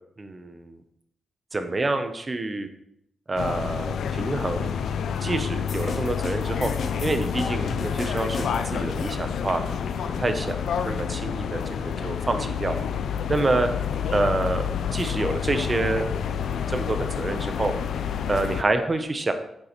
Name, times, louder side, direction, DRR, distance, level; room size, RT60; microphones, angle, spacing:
voice 1, 0.2-0.8 1.5-2.7 3.3-4.7 5.2-6.7 7.0-9.8 10.2-10.6 10.8-11.6 12.0-12.8 13.3-13.7 14.1-17.7 18.3-19.3, right 2 dB, 30° right, 8 dB, 0.7 m, -27 dB
sound 1, 3.4-18.6, left 7 dB, 90° left, 0.4 m, -28 dB
sound 2, 5.7-8.9, left 3 dB, 60° left, 0.9 m, -37 dB
8.3 x 6.4 x 3.0 m, 0.76 s
cardioid pair, 100°, 0 cm